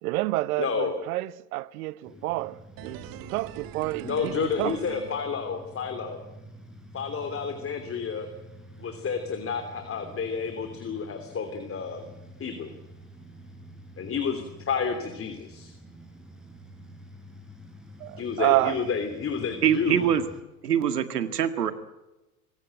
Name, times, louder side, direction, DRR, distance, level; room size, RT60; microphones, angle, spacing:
voice 1, 0.0-4.8 18.0-18.9, right 19 dB, 70° right, 1.0 m, -29 dB
voice 2, 0.6-1.0 2.1-2.2 4.0-6.2 6.9-8.3 8.8-12.1 12.4-12.7 14.0-15.7 18.2-20.1, left 6 dB, 30° left, 3.2 m, -30 dB
sound 1, 2.0-20.4, equal, ahead, 6.2 m, -48 dB
sound 2, 2.8-5.9 6.2-6.3, right 12 dB, 45° right, 2.0 m, -43 dB
voice 3, 19.6-20.2 20.6-21.7, right 9 dB, 90° right, 1.9 m, -24 dB
26.5 x 16.0 x 9.1 m
hypercardioid pair, 90°, 46 cm